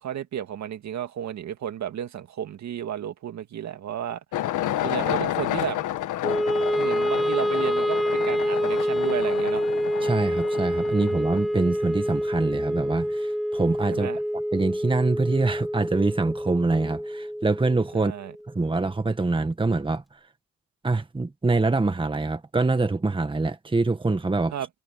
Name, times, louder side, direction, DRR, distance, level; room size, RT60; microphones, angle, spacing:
voice 1, 0.0-4.2 4.8-5.8 6.8-9.6 13.9-14.2 17.9-18.3 24.5-24.7, right 10 dB, 65° right, 2.1 m, -33 dB
sound 1, 4.3-11.6, left 13 dB, 80° left, 1.5 m, -30 dB
Wind instrument woodwind instrument, 6.2-18.5, equal, ahead, 0.9 m, -27 dB
voice 2, 10.0-14.1 14.5-18.1 18.5-20.0 20.8-24.5, right 3 dB, 15° right, 1.7 m, -25 dB
cardioid pair, 90°, 30 cm